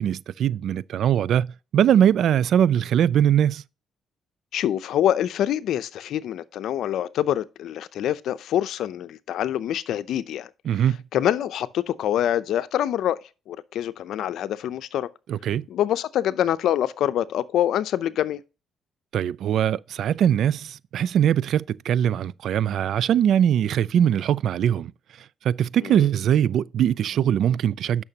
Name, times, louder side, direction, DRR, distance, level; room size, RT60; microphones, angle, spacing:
voice 1, 0.0-3.6 10.7-11.0 15.3-15.7 19.1-24.9 25.4-28.0, right 9 dB, 70° right, 0.3 m, -21 dB
voice 2, 4.5-10.5 11.1-15.1 15.7-18.4 25.8-26.1, left 11 dB, 75° left, 0.6 m, -25 dB
10.5 x 6.0 x 2.9 m
cardioid pair, 90°, 0 cm